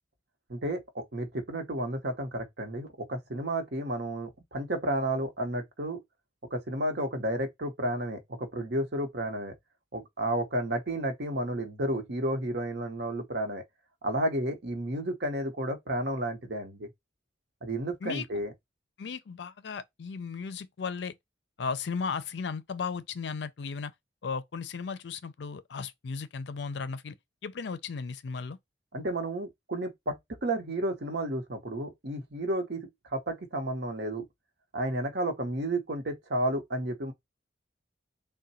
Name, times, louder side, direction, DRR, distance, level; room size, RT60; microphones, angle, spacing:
voice 1, 0.5-6.0 6.5-9.5 9.9-13.6 14.0-16.9 17.6-18.5 28.9-34.2 34.7-37.1, right 1 dB, 60° right, 0.9 m, -32 dB
voice 2, 19.0-21.1 21.6-23.9 24.2-27.2 27.4-28.6, left 5 dB, 65° left, 0.4 m, -35 dB
3.7 x 2.2 x 4.1 m
head